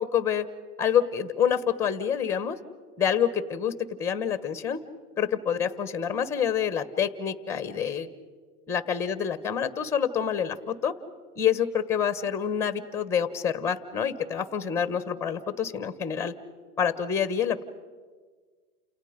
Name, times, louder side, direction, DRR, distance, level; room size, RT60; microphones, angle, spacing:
voice 1, 0.1-0.4 0.8-2.6 3.0-3.7 4.0-4.8 5.2-8.1 8.7-10.9 11.3-16.3 16.8-17.6, left 8 dB, 5° left, 12 dB, 1.3 m, -27 dB
29.5 x 28.5 x 5.2 m, 1.5 s
supercardioid pair, 155°, 46 cm